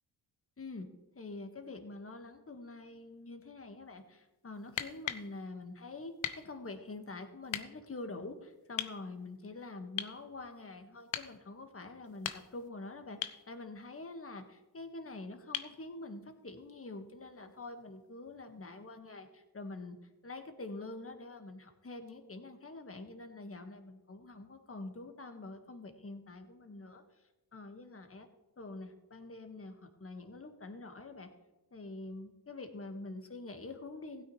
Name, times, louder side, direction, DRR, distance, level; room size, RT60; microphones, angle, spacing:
voice 1, 0.6-0.9 1.2-20.0 20.2-27.0 27.5-28.3 28.6-31.3 31.7-34.2, left 2 dB, 30° left, 6 dB, 1.8 m, -46 dB
sound 1, 4.6-5.3 6.2-6.4 7.5-7.7 8.8-9.0 10.0-10.2 11.1-11.3 12.1-12.7 13.2-13.4 15.5-15.8 17.6-17.7, left 11 dB, 70° left, 0.9 m, -38 dB
15.5 x 9.5 x 3.3 m, 1.1 s
supercardioid pair, 50°, 47 cm